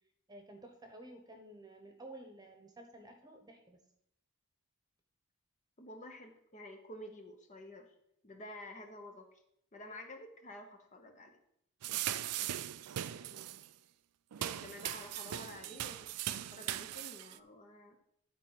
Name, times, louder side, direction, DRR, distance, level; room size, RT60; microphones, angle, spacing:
voice 1, 0.3-3.8 13.0-13.5, right 1 dB, 15° right, 4 dB, 1.1 m, -53 dB
voice 2, 5.8-7.9 8.2-9.4 9.7-11.4 14.4-18.0, left 1 dB, 35° left, 4 dB, 0.9 m, -50 dB
sound 1, 11.8-13.7 14.3-17.4, right 12 dB, 90° right, 0.4 m, -39 dB
12.0 x 4.3 x 5.7 m, 0.75 s
head